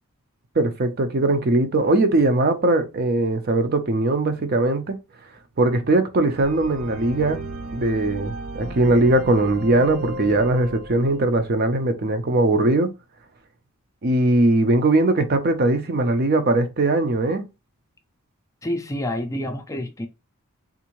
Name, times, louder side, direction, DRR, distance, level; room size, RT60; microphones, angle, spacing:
voice 1, 0.6-5.0 5.6-7.4 7.7-12.9 14.0-17.4, right 2 dB, 45° right, 0.5 m, -20 dB
sound 1, 6.4-11.5, right 1 dB, 85° right, 0.7 m, -35 dB
voice 2, 18.6-20.1, left 1 dB, 15° left, 0.4 m, -28 dB
3.6 x 2.6 x 2.9 m
head